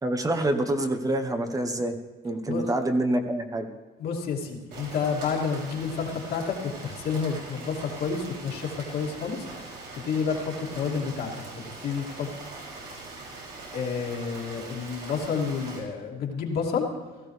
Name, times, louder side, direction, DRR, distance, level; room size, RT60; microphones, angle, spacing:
voice 1, 0.0-2.0 2.2-3.7, right 1 dB, 20° right, 6 dB, 1.0 m, -26 dB
voice 2, 4.0-9.4 9.9-12.3 13.7-16.9, left 5 dB, 70° left, -1 dB, 2.6 m, -30 dB
Rain, 4.7-15.8, right 3 dB, 80° right, 4.8 m, -42 dB
17.0 x 14.0 x 3.3 m, 1.3 s
cardioid pair, 110°, 17 cm